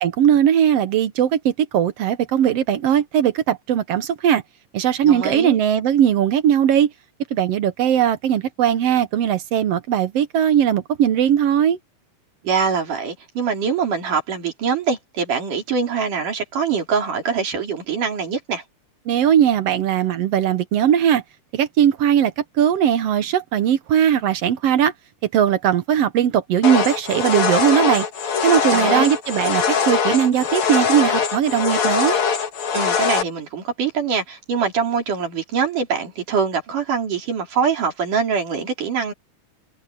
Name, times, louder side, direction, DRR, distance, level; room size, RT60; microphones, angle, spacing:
voice 1, 0.0-4.4 4.7-6.9 7.3-11.8 19.1-21.2 21.5-24.9 25.3-28.1 28.4-32.2, right 9 dB, 65° right, 1.7 m, -19 dB
voice 2, 5.0-5.6 12.4-18.6 28.7-29.1 32.7-39.1, right 6 dB, 90° right, 5.4 m, -23 dB
sound 1, 26.6-33.2, left 6 dB, 65° left, 3.7 m, -22 dB
omnidirectional pair, 3.5 m